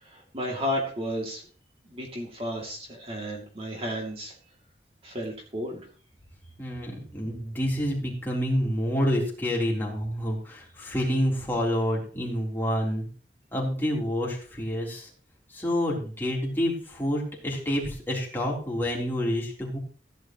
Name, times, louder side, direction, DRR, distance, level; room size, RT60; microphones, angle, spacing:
voice 1, 0.0-1.4 1.9-4.3 5.0-5.8, equal, 35° right, 0 dB, 2.7 m, -33 dB
voice 2, 6.6-13.1 13.5-15.1 15.5-19.8, equal, 10° left, -3 dB, 3.8 m, -28 dB
15.5 x 10.5 x 3.1 m, 0.41 s
head